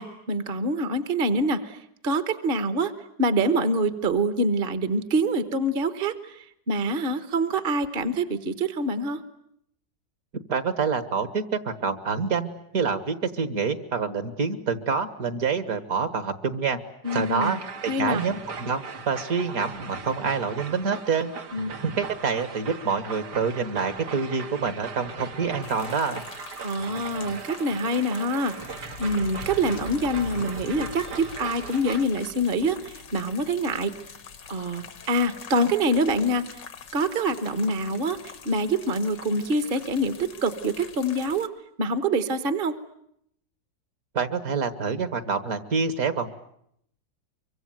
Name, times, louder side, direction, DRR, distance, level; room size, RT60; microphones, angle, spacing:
voice 1, 0.0-2.9 3.2-9.2 17.0-17.6 17.9-18.2 21.5-21.7 26.6-28.6 29.0-33.9 34.5-36.6 36.9-41.5 41.8-42.7, right 1 dB, 35° right, 10 dB, 1.2 m, -25 dB
voice 2, 10.5-16.8 17.1-21.3 21.8-26.3 44.1-46.3, right 5 dB, 55° right, 11 dB, 2.0 m, -27 dB
sound 1, 17.0-32.1, right 5 dB, 70° right, 2.1 m, -39 dB
sound 2, 25.6-41.5, left 6 dB, 85° left, 2.2 m, -44 dB
24.5 x 24.5 x 9.1 m, 0.72 s
omnidirectional pair, 1.9 m